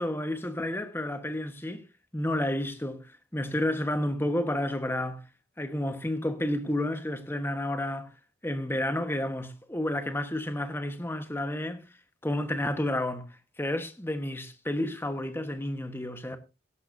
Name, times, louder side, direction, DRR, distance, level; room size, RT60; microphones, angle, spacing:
voice 1, 0.0-1.8 2.1-5.2 5.6-8.1 8.4-11.8 12.2-13.3 13.6-16.4, left 1 dB, 10° left, 1.3 m, -31 dB
17.0 x 11.5 x 2.7 m
head